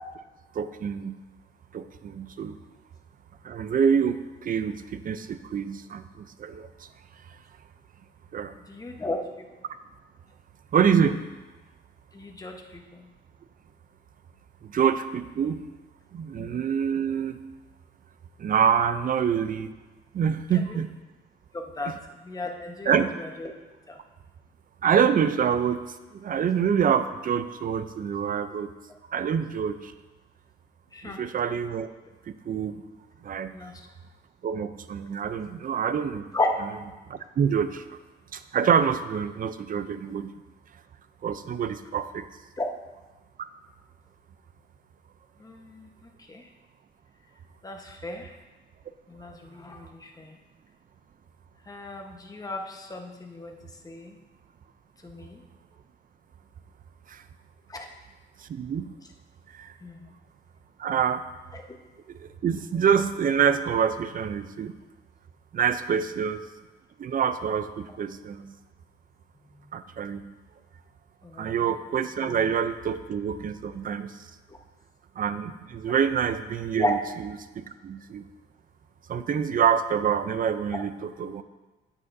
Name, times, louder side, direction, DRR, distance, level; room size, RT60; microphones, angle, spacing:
voice 1, 0.5-1.2 1.7-2.6 3.4-6.9 8.3-8.5 10.7-11.2 14.6-15.6 16.1-17.4 18.4-19.7 20.1-20.9 21.9-22.0 22.8-23.1 24.8-25.8 26.1-28.7 29.1-29.9 31.0-31.9 32.3-32.8 33.2-33.5 34.4-36.3 37.1-38.0 38.3-40.3 41.2-42.3 57.1-57.2 58.4-58.9 59.5-59.7 60.8-61.2 62.2-64.7 65.5-66.4 67.0-68.5 69.7-70.3 71.4-74.3 75.2-77.0 77.6-78.2 79.1-81.4, right 7 dB, 45° right, 12 dB, 0.5 m, -26 dB
voice 2, 8.7-9.2 12.1-13.1 16.4-16.5 21.5-21.9 22.2-23.5 23.9-24.0 30.9-31.2 33.5-33.7 36.3-36.5 42.6-42.7 45.4-46.5 47.6-48.3 49.1-50.4 51.7-53.6 53.8-54.2 55.0-55.4 57.7-57.9 59.8-60.1 61.5-61.6 71.2-71.7 74.5-74.6 76.8-76.9 80.7-80.8, left 2 dB, 20° left, 2 dB, 1.1 m, -34 dB
9.3 x 8.2 x 2.7 m, 1.2 s
cardioid pair, 90°, 20 cm